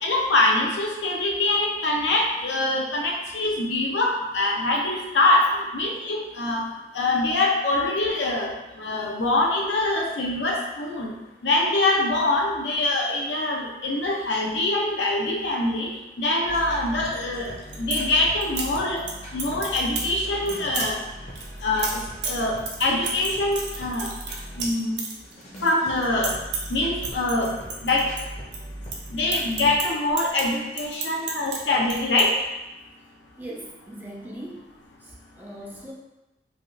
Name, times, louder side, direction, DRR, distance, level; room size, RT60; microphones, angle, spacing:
voice 1, 0.0-6.6 6.9-11.1 11.4-15.9 16.2-17.5 17.8-21.0 21.6-22.0 22.2-24.1 24.6-25.0 25.6-26.3 26.7-27.5 27.8-28.1 29.1-32.4, left 2 dB, 80° left, -1 dB, 0.6 m, -24 dB
sound 1, 16.4-24.7 25.2-29.8, equal, 40° left, 0.7 m, -39 dB
sound 2, 17.4-18.0 18.4-19.1 19.4-20.1 20.5-20.9 21.3-25.7 26.0-26.7 27.0-28.6 28.8-31.6 31.8-32.2, right 4 dB, 75° right, 0.5 m, -31 dB
voice 2, 33.4-34.7 35.0-35.9, right 1 dB, 10° right, -3 dB, 0.4 m, -39 dB
3.5 x 2.3 x 2.5 m, 1.0 s
head